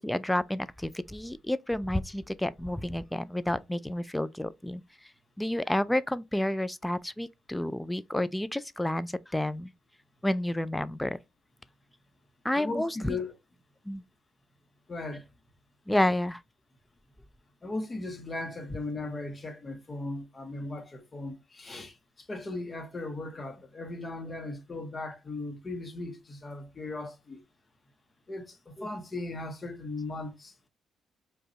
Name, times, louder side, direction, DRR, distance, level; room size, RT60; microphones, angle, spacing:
voice 1, 0.0-4.8 5.4-9.7 10.2-11.2 12.4-13.2 13.9-14.0 15.9-16.4 28.8-28.9, left 1 dB, 5° left, 0.3 m, -30 dB
voice 2, 12.5-13.3 14.9-15.2 17.6-27.4 28.3-30.7, left 2 dB, 30° left, 0.9 m, -37 dB
4.9 x 2.3 x 2.8 m
cardioid pair, 90°, 0 cm